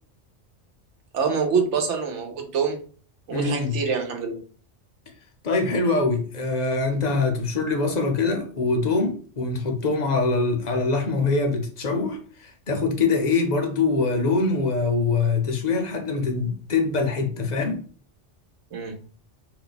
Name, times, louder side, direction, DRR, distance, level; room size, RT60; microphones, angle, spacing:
voice 1, 1.1-2.8 3.3-4.4 18.7-19.0, right 5 dB, 80° right, 1.1 m, -25 dB
voice 2, 3.3-3.8 5.4-17.8, left 3 dB, 45° left, 0.6 m, -24 dB
2.6 x 2.2 x 3.9 m
omnidirectional pair, 1.2 m